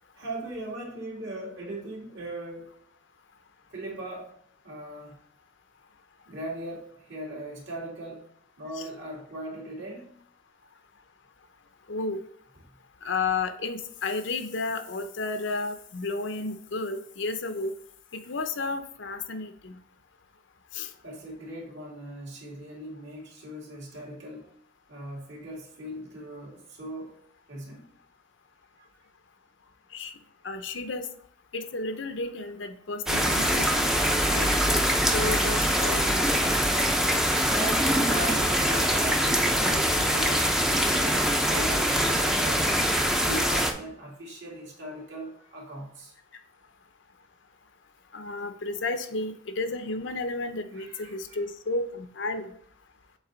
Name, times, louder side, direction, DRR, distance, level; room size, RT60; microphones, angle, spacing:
voice 1, 0.1-2.7 3.7-4.3 4.6-5.2 6.3-8.3 8.6-10.1 21.0-24.5 24.9-27.2 27.5-27.9 28.8-29.1 34.9-35.0 36.8-37.0 37.3-40.5 40.9-42.8 43.1-46.1 50.7-51.4, right 1 dB, 60° right, -3 dB, 2.3 m, -39 dB
voice 2, 11.9-12.2 13.0-17.7 18.1-19.8 20.7-20.9 29.9-30.1 30.4-31.1 31.5-33.9 34.3-36.3 48.1-52.5, left 3 dB, 65° left, 8 dB, 0.7 m, -32 dB
sound 1, 33.1-43.7, equal, 5° right, 0.5 m, -24 dB
7.2 x 4.0 x 3.9 m, 0.62 s
head